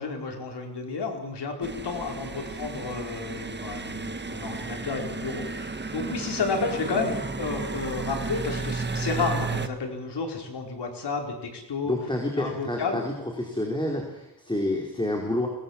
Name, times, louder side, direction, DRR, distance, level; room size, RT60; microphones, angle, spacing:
voice 1, 0.0-11.9 12.4-13.0, left 4 dB, 85° left, 2 dB, 4.6 m, -31 dB
sound 1, 1.6-9.7, right 4 dB, 25° right, 1.6 m, -33 dB
voice 2, 11.8-13.1 13.4-15.5, left 1 dB, 10° left, 1 dB, 4.4 m, -28 dB
24.5 x 20.0 x 7.3 m, 0.92 s
cardioid pair, 80°, 40 cm